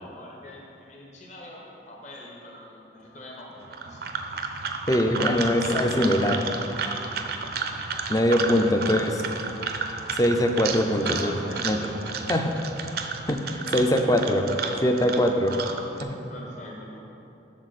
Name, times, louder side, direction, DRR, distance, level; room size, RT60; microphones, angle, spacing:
voice 1, 0.0-4.1 5.3-6.2 8.3-8.9 10.9-12.4 14.0-14.7 16.2-17.0, left 1 dB, 40° left, -2 dB, 1.1 m, -43 dB
sound 1, 3.6-16.0, right 5 dB, 55° right, 0.5 m, -32 dB
voice 2, 4.9-6.4 8.1-9.2 10.2-11.4 11.6-11.8 12.3-12.5 13.3-14.4 14.8-15.5 16.0-16.2, left 1 dB, 20° left, 5 dB, 0.5 m, -22 dB
12.5 x 4.4 x 4.1 m, 2.8 s
head